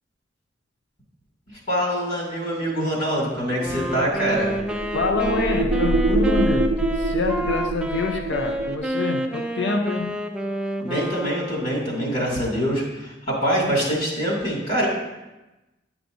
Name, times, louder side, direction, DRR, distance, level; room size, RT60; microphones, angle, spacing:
voice 1, 1.7-4.5 10.8-14.9, equal, 50° left, 2.5 m, -24 dB
Wind instrument woodwind instrument, 3.6-11.9, equal, 5° right, 0.4 m, -29 dB
sound 1, 3.9-8.8, right 2 dB, 65° right, 0.5 m, -25 dB
voice 2, 4.9-10.2, left 3 dB, 70° left, 0.6 m, -26 dB
10.0 x 6.0 x 2.6 m
head